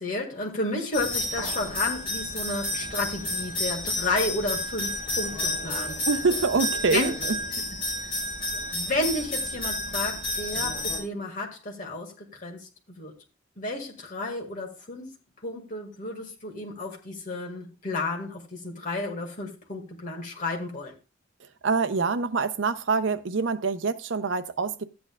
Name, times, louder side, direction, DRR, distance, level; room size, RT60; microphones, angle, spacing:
voice 1, 0.0-6.0 6.9-7.2 8.7-13.1 13.6-15.1 15.4-20.9, left 2 dB, 45° left, 2.0 m, -32 dB
sound 1, 0.9-11.0, left 1 dB, 25° left, 4.5 m, -31 dB
voice 2, 6.0-7.4 21.4-24.8, right 4 dB, 75° right, 0.6 m, -26 dB
13.5 x 8.7 x 2.3 m
head